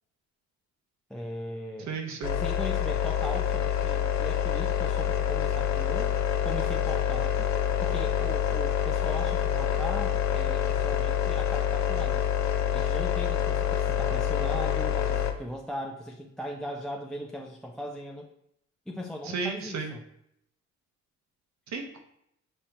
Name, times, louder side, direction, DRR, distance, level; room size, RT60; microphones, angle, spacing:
voice 1, 1.1-2.0 2.3-6.1 6.4-12.3 12.7-18.3 18.9-20.0, equal, ahead, 1 dB, 0.4 m, -39 dB
voice 2, 1.8-2.4 19.3-19.9 21.7-22.0, right 4 dB, 65° right, 4 dB, 0.9 m, -33 dB
sound 1, 2.2-15.3, left 9 dB, 65° left, 0.5 m, -27 dB
5.4 x 3.1 x 2.8 m, 0.77 s
cardioid pair, 90°, 30 cm